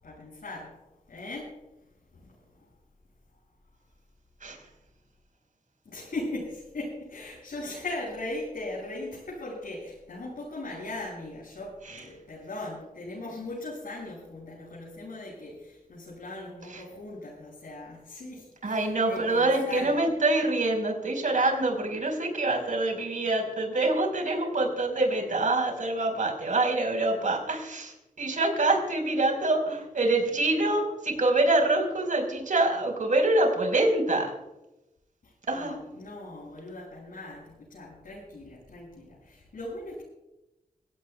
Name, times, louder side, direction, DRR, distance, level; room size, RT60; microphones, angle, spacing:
voice 1, 0.0-0.8 1.1-1.5 2.1-2.7 5.8-20.0 35.2-40.0, left 2 dB, 75° left, -6 dB, 6.8 m, -39 dB
voice 2, 18.6-34.4 35.5-35.8, right 2 dB, 65° right, 3 dB, 4.8 m, -25 dB
26.5 x 17.0 x 2.3 m, 0.94 s
wide cardioid pair, 105°, 15 cm